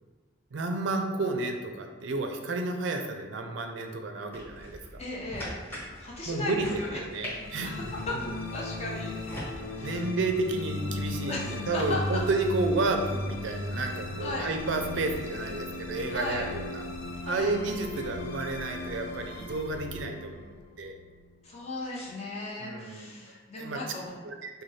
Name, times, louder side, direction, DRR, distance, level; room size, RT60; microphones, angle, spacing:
voice 1, 0.5-5.0 6.3-7.9 8.1-8.3 9.8-16.8 17.3-20.5 20.8-21.0 22.6-23.1 23.6-23.8 24.2-24.6, right 3 dB, 70° right, 4 dB, 0.4 m, -31 dB
sound 1, 4.3-9.5, equal, 10° left, 1.0 m, -42 dB
voice 2, 5.0-5.6 6.0-7.0 7.6-8.2 8.5-9.1 9.7-10.1 11.3-12.2 14.2-14.5 16.1-16.5 17.2-17.6 21.4-24.1, left 2 dB, 35° left, -4 dB, 0.5 m, -36 dB
sound 2, 7.3-21.7, left 2 dB, 90° left, 0.5 m, -37 dB
4.1 x 2.2 x 3.2 m, 1.5 s
head